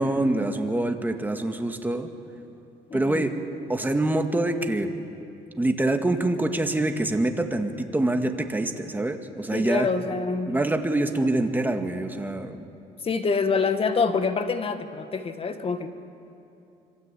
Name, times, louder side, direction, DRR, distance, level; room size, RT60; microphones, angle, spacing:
voice 1, 0.0-2.1 2.9-3.3 3.7-4.9 5.6-9.9 10.5-12.7, right 2 dB, 10° right, 5 dB, 2.0 m, -25 dB
voice 2, 2.9-3.3 9.5-10.5 13.0-15.9, left 4 dB, 35° left, 8 dB, 1.8 m, -26 dB
26.5 x 24.0 x 8.5 m, 2.7 s
cardioid pair, 110°, 17 cm